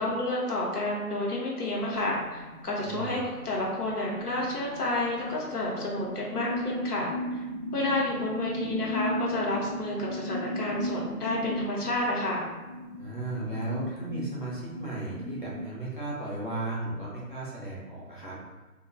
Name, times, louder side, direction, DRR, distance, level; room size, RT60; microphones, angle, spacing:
voice 1, 0.0-7.4 7.7-12.5, left 1 dB, 75° left, -3 dB, 0.9 m, -30 dB
sound 1, 1.8-15.6, left 1 dB, 35° left, 0.5 m, -37 dB
voice 2, 2.8-3.2 13.0-18.4, right 2 dB, 35° right, -8 dB, 0.5 m, -35 dB
2.4 x 2.2 x 2.6 m, 1.2 s
figure-of-eight pair, 155°, 46 cm